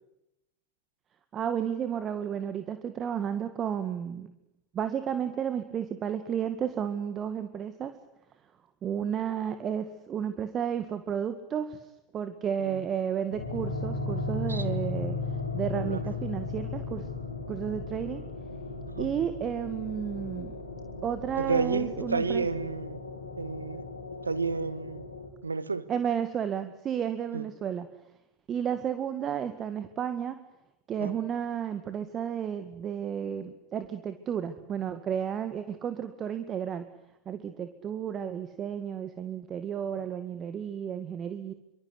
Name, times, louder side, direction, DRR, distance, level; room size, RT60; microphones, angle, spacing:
voice 1, 1.3-4.3 4.7-7.9 8.8-11.8 12.1-15.2 15.5-17.1 17.5-18.2 19.0-20.6 21.0-22.5 25.9-27.9 28.5-30.4 30.9-36.9 37.3-41.5, right 8 dB, 30° right, 10 dB, 2.0 m, -32 dB
ab midnight atmos, 13.3-25.3, left 3 dB, 85° left, 4.5 m, -36 dB
voice 2, 14.5-14.9 15.7-16.1 18.9-19.1 21.4-23.0 23.4-23.9 24.2-25.1 25.4-25.9 27.3-27.5 31.0-31.1 39.9-40.0, right 4 dB, 85° right, 16 dB, 1.5 m, -31 dB
26.5 x 25.0 x 8.3 m, 0.87 s
figure-of-eight pair, 85°, 0 cm